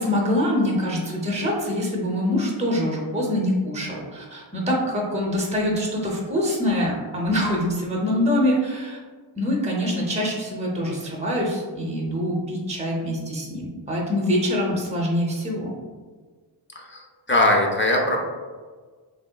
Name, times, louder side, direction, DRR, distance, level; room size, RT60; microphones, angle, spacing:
voice 1, 0.0-9.0 9.4-15.7, left 1 dB, 15° right, -2 dB, 0.7 m, -24 dB
voice 2, 16.8-18.2, left 1 dB, 25° left, 1 dB, 0.5 m, -21 dB
3.0 x 2.8 x 2.2 m, 1.5 s
cardioid pair, 55°, 47 cm